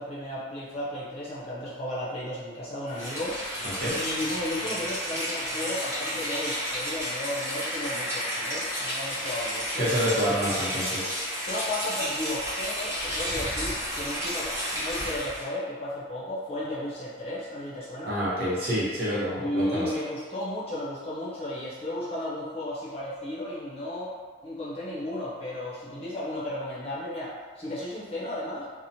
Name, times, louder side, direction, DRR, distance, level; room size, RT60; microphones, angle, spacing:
voice 1, 0.0-3.4 3.9-9.9 11.5-18.2 19.4-24.1 24.4-28.6, left 1 dB, 30° left, -8 dB, 0.6 m, -34 dB
Rain, 2.9-15.5, equal, 15° right, 0.6 m, -32 dB
voice 2, 9.8-11.1 18.1-19.9, equal, 55° right, -9 dB, 0.9 m, -27 dB
2.9 x 2.1 x 2.7 m, 1.5 s
head